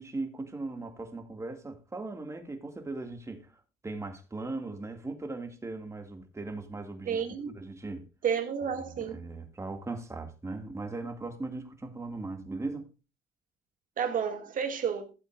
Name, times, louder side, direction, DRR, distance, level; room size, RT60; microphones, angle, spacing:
voice 1, 0.0-3.5 3.8-7.2 7.5-8.1 8.8-12.9, right 3 dB, 15° right, 2.2 m, -38 dB
voice 2, 7.1-7.5 8.2-9.2 14.0-15.1, right 7 dB, 50° right, 2.4 m, -31 dB
15.0 x 8.1 x 2.5 m
cardioid pair, 110°, 17 cm